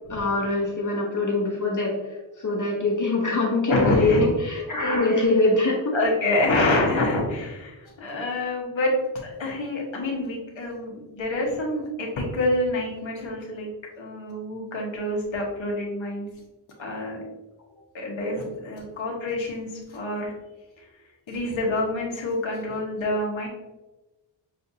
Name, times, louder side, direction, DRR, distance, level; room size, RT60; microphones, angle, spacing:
voice 1, 0.1-5.9, left 2 dB, 40° left, -1 dB, 0.7 m, -23 dB
voice 2, 3.7-4.2 5.9-9.0 9.2-13.7 14.0-16.3 16.8-17.2 17.9-20.3 21.3-23.5, left 1 dB, 75° left, -1 dB, 1.2 m, -27 dB
6.5 x 2.5 x 2.7 m, 1.1 s
wide cardioid pair, 125°, 47 cm